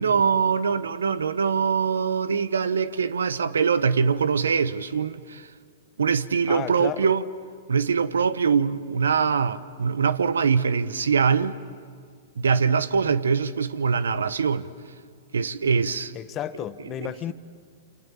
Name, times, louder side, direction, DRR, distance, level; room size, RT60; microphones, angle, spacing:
voice 1, 0.0-5.5 6.0-7.2 7.7-11.6 12.4-14.7 15.3-16.1, right 6 dB, 80° right, 1.0 m, -23 dB
voice 2, 6.5-7.1 16.1-17.3, left 11 dB, 30° left, 1.0 m, -32 dB
28.5 x 26.5 x 7.3 m
hypercardioid pair, 110°, 0 cm